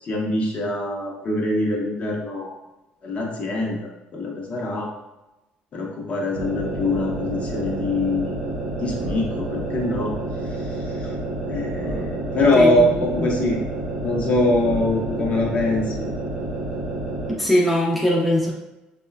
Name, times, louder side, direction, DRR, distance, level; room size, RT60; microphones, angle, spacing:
voice 1, 0.0-2.6 3.0-4.9 5.7-8.4 8.8-10.1 10.6-11.1 11.5-13.6 14.0-16.0, left 2 dB, 40° left, -1 dB, 0.6 m, -23 dB
sound 1, 6.3-17.4, right 2 dB, 60° right, 0.7 m, -29 dB
voice 2, 12.5-13.3 17.4-18.5, left 1 dB, ahead, -3 dB, 0.5 m, -21 dB
3.0 x 2.1 x 2.2 m, 1.0 s
cardioid pair, 100°, 3 cm